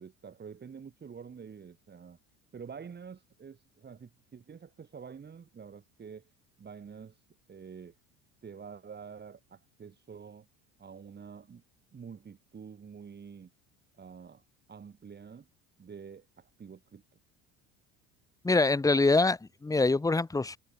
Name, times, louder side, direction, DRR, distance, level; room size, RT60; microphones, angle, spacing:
voice 1, 0.0-2.2 2.5-6.3 6.6-7.2 7.5-7.9 8.4-10.5 10.8-11.6 11.9-13.5 14.0-14.4 14.7-15.5 15.8-17.0, right 6 dB, 30° right, 6.9 m, -47 dB
voice 2, 18.4-20.6, left 3 dB, 10° left, 1.0 m, -25 dB
supercardioid pair, 105°, 34 cm